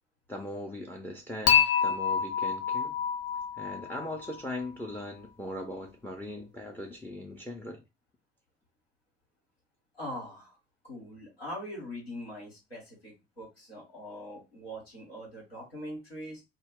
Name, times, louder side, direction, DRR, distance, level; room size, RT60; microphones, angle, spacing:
voice 1, 0.3-3.0 3.6-7.8, left 1 dB, 5° left, 0.5 m, -39 dB
Dishes pots and pans / Chink clink, 1.5-4.6, left 8 dB, 55° left, 0.6 m, -27 dB
voice 2, 9.9-10.5 10.8-16.4, equal, 90° left, 1.1 m, -42 dB
2.1 x 2.1 x 3.5 m
figure-of-eight pair, 50°, 30 cm